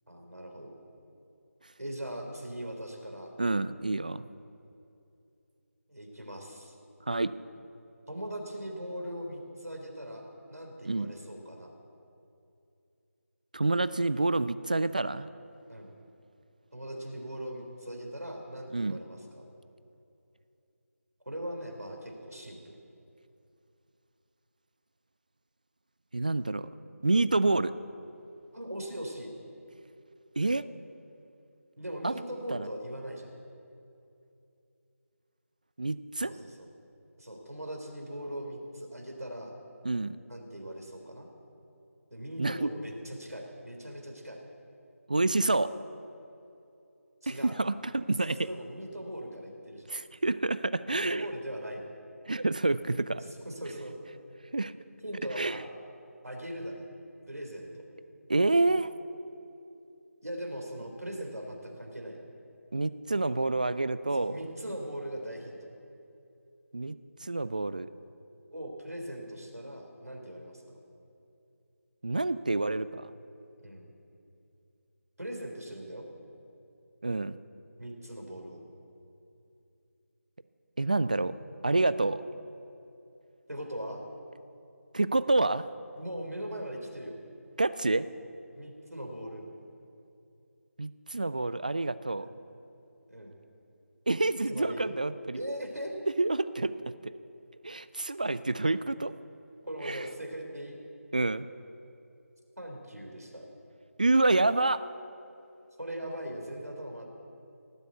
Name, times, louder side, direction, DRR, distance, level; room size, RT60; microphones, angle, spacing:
voice 1, 0.1-0.8 1.8-3.3 5.9-6.7 8.1-10.2 10.5-11.7 15.7-15.9 16.7-19.5 21.3-22.6 28.5-29.3 31.8-33.3 36.3-36.7 37.2-39.6 40.3-41.3 42.1-44.4 47.2-47.6 48.4-49.9 50.9-51.9 53.5-53.9 55.0-55.6 56.2-56.8 57.3-57.8 60.2-62.2 64.1-65.7 68.5-70.6 73.6-73.9 75.2-76.0 77.8-78.6 83.5-84.0 86.0-87.2 88.5-89.4 92.1-92.4 93.1-93.4 94.5-94.9 95.3-95.9 99.6-100.8 102.6-103.5 105.8-107.1, right 1 dB, 85° right, 1 dB, 3.7 m, -40 dB
voice 2, 3.4-4.2 7.1-7.3 10.9-11.1 13.5-15.3 18.7-19.0 26.1-26.7 27.0-27.7 30.4-30.6 32.0-32.1 32.5-32.7 35.8-36.3 39.8-40.2 42.4-42.7 45.1-45.7 47.3-48.5 49.9-51.3 52.3-53.2 54.5-54.7 55.4-55.6 58.3-58.9 62.7-64.4 66.7-67.9 72.0-73.1 77.0-77.4 80.8-81.3 81.6-82.2 84.9-85.7 87.6-88.1 90.8-92.3 94.1-95.4 96.2-96.7 97.6-99.1 99.8-100.0 101.1-101.5 104.0-104.8, right 2 dB, 30° right, 15 dB, 0.3 m, -28 dB
18.0 x 8.3 x 8.0 m, 2.7 s
figure-of-eight pair, 165°, 8 cm